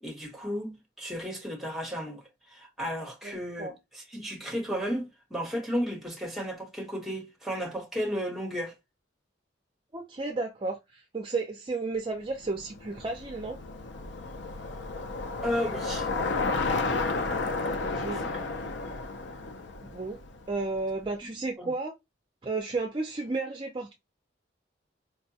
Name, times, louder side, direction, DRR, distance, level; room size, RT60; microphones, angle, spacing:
voice 1, 0.0-2.2 2.5-8.7 15.4-16.1 18.3-18.4 21.6-21.7, equal, ahead, 1.0 m, -33 dB
voice 2, 3.2-3.7 9.9-13.6 17.8-18.3 19.9-20.2 20.5-21.9 22.4-23.9, right 3 dB, 25° right, 0.5 m, -33 dB
Bicycle, 12.4-20.8, left 3 dB, 65° left, 0.5 m, -32 dB
4.5 x 2.2 x 2.7 m
head